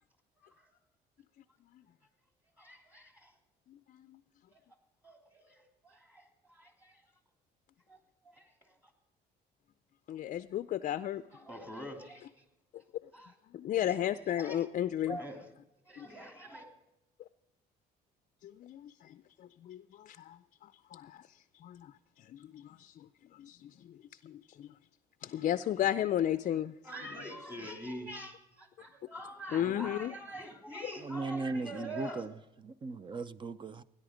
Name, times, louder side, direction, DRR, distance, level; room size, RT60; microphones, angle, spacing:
voice 1, 0.4-0.7 2.6-3.3 4.5-4.6 5.0-7.0 7.9-8.0 8.3-8.7 11.3-12.4 13.1-13.3 13.9-14.6 15.1-15.5 15.9-16.7 26.8-32.3, equal, 10° right, 2.9 m, -45 dB
voice 2, 10.1-11.2 13.5-15.2 18.6-18.8 19.7-19.8 20.9-21.0 21.6-21.8 25.3-26.7 29.5-30.2 30.8-30.9, left 11 dB, 50° left, 0.5 m, -31 dB
voice 3, 31.0-32.3 32.6-33.8, right 3 dB, 30° right, 0.6 m, -37 dB
17.0 x 10.5 x 5.0 m
cardioid pair, 110°, 17 cm